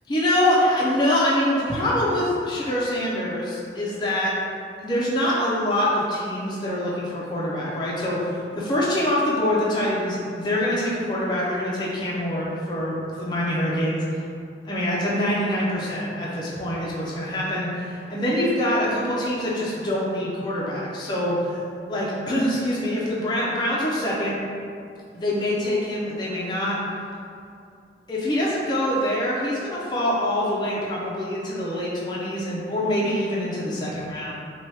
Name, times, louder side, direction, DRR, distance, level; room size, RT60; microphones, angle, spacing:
voice 1, 0.1-4.3 4.8-14.2 14.6-21.6 21.9-24.4 25.1-26.8 28.1-34.3, left 1 dB, 25° left, -6 dB, 0.4 m, -25 dB
2.8 x 2.2 x 3.1 m, 2.4 s
head